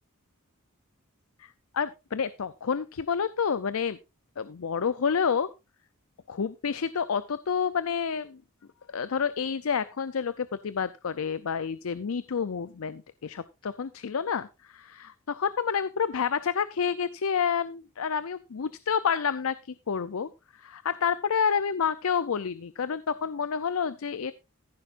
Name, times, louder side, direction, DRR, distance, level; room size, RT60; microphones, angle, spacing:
voice 1, 1.4-4.0 4.4-5.5 6.3-8.4 8.9-20.3 20.6-24.3, left 6 dB, 70° left, 15 dB, 0.5 m, -29 dB
14.5 x 11.0 x 2.5 m, 0.25 s
head